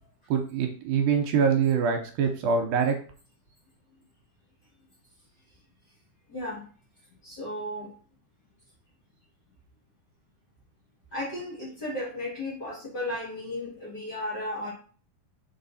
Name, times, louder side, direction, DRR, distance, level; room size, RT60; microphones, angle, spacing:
voice 1, 0.3-3.0, right 6 dB, 75° right, 4 dB, 2.4 m, -24 dB
voice 2, 6.3-6.6 7.2-7.9 11.1-14.7, left 1 dB, 35° left, -6 dB, 1.8 m, -34 dB
6.1 x 4.0 x 4.1 m, 0.41 s
omnidirectional pair, 4.4 m